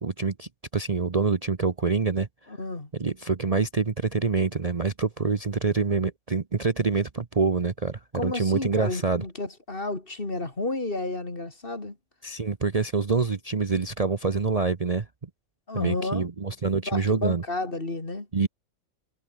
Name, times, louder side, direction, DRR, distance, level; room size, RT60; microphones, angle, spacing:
voice 1, 0.0-2.3 2.9-9.2 12.2-15.1 15.7-17.4 18.3-18.5, right 4 dB, 30° right, 0.9 m, -26 dB
voice 2, 2.5-2.9 8.1-12.0 15.7-16.3 16.8-18.3, left 2 dB, 45° left, 3.5 m, -31 dB
omnidirectional pair, 1.3 m